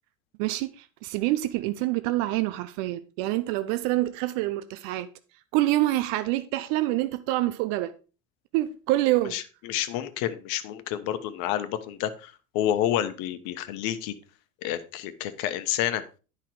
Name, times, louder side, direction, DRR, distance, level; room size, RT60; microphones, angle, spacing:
voice 1, 0.4-5.1 5.5-7.9 8.5-9.3, right 16 dB, 55° right, 0.8 m, -26 dB
voice 2, 9.3-14.1 14.6-16.0, left 11 dB, 60° left, 1.2 m, -29 dB
10.0 x 5.7 x 4.7 m
hypercardioid pair, 75°, 41 cm